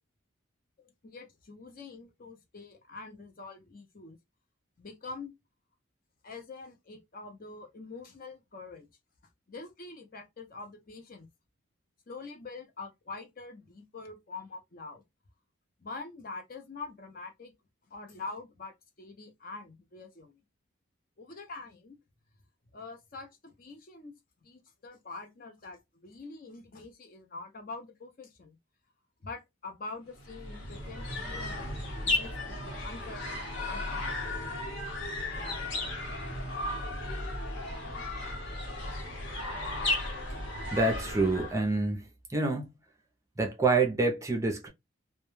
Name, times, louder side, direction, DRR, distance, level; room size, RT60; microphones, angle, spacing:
voice 1, 0.8-4.2 4.8-5.3 6.2-8.9 9.5-11.3 12.1-15.0 15.8-17.5 17.9-20.4 21.2-22.0 22.7-24.1 24.4-28.6 29.2-34.3, left 3 dB, 45° left, 0.6 m, -45 dB
sound 1, 30.2-41.7, left 2 dB, 60° left, 0.9 m, -35 dB
voice 2, 40.7-42.7 43.4-44.7, right 3 dB, 15° right, 0.5 m, -27 dB
2.2 x 2.2 x 3.0 m
head